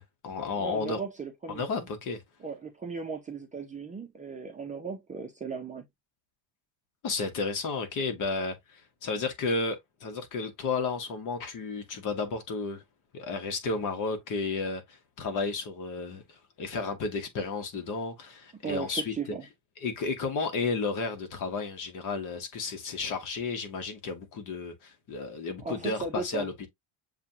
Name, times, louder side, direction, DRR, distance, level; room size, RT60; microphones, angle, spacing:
voice 1, 0.0-1.0 1.5-2.2 7.0-12.8 13.1-19.1 19.8-26.7, left 4 dB, 45° left, 1.4 m, -32 dB
voice 2, 0.6-1.6 2.4-5.8 18.6-19.4 25.6-26.5, right 5 dB, 15° right, 0.7 m, -36 dB
7.1 x 2.5 x 2.8 m
cardioid pair, 150°, 45 cm